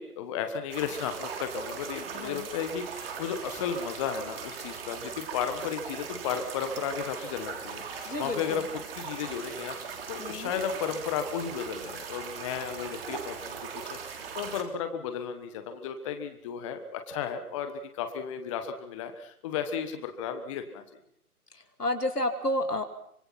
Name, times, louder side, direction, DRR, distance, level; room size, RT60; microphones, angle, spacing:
voice 1, 0.0-8.6 9.0-20.8, left 7 dB, 20° left, 8 dB, 1.4 m, -34 dB
sound 1, 0.7-14.6, right 6 dB, 40° right, 3.4 m, -39 dB
voice 2, 2.1-2.5 8.0-8.6 10.2-10.5 21.5-22.8, left 1 dB, 85° left, 7 dB, 3.0 m, -31 dB
25.0 x 21.5 x 5.8 m, 0.68 s
figure-of-eight pair, 140°, 46 cm